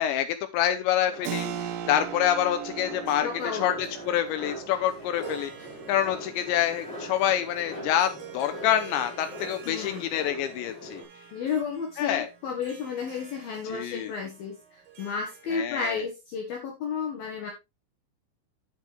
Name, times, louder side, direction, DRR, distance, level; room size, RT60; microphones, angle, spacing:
voice 1, 0.0-1.5 1.9-5.5 5.9-11.0 12.0-12.3 13.7-14.1 15.5-16.0, left 11 dB, 90° left, 9 dB, 2.6 m, -27 dB
sound 1, 1.0-11.0, equal, 35° left, 5.5 m, -42 dB
Keyboard (musical), 1.2-11.6, right 10 dB, 75° right, 2.5 m, -41 dB
voice 2, 3.2-3.7 9.6-10.1 11.3-17.5, left 5 dB, 65° left, 1 dB, 2.6 m, -32 dB
Harp, 5.0-15.9, right 7 dB, 60° right, 3.4 m, -49 dB
9.0 x 8.4 x 3.4 m, 0.24 s
omnidirectional pair, 5.9 m